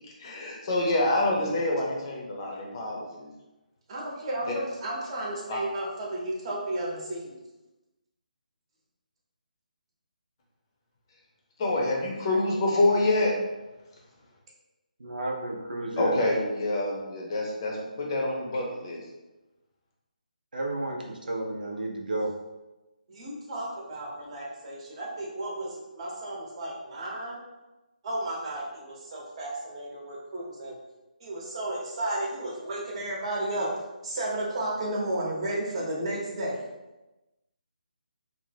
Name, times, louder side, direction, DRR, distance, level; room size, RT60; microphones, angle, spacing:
voice 1, 0.2-3.3 5.5-5.6 11.6-13.3 16.0-19.0, left 2 dB, 30° left, -2 dB, 0.6 m, -26 dB
voice 2, 3.9-7.3 23.1-27.4 28.0-30.7 31.2-33.7 34.0-36.6, right 1 dB, 40° right, -4 dB, 0.8 m, -33 dB
voice 3, 15.0-16.1 20.5-22.3, right 2 dB, 80° right, 0 dB, 0.6 m, -32 dB
2.6 x 2.1 x 3.3 m, 1.0 s
figure-of-eight pair, 155°, 5 cm